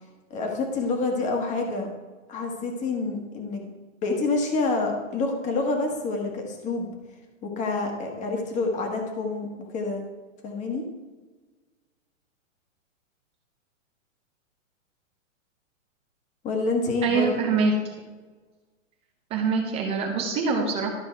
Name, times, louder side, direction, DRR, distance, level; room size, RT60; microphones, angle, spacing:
voice 1, 0.3-1.9 2.3-3.6 4.0-6.9 7.4-10.0 10.4-10.8 16.4-17.7, left 3 dB, 20° left, 2 dB, 1.4 m, -27 dB
voice 2, 17.0-17.8 19.3-20.9, right 4 dB, 15° right, 2 dB, 0.7 m, -24 dB
12.5 x 5.3 x 4.6 m, 1.3 s
hypercardioid pair, 150°, 40 cm